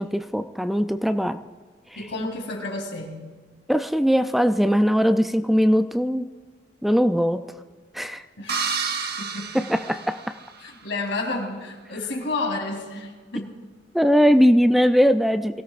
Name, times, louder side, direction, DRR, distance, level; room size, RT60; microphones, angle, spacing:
voice 1, 0.0-1.4 1.9-2.1 3.7-6.3 6.8-7.4 7.9-8.2 9.5-10.2 13.9-15.6, equal, ahead, 9 dB, 0.4 m, -20 dB
voice 2, 1.9-3.3 8.4-8.6 9.2-9.6 10.6-13.5, left 2 dB, 85° left, 1 dB, 3.3 m, -31 dB
sound 1, 8.5-10.7, right 5 dB, 60° right, 1.1 m, -30 dB
23.5 x 16.5 x 2.5 m, 1.4 s
head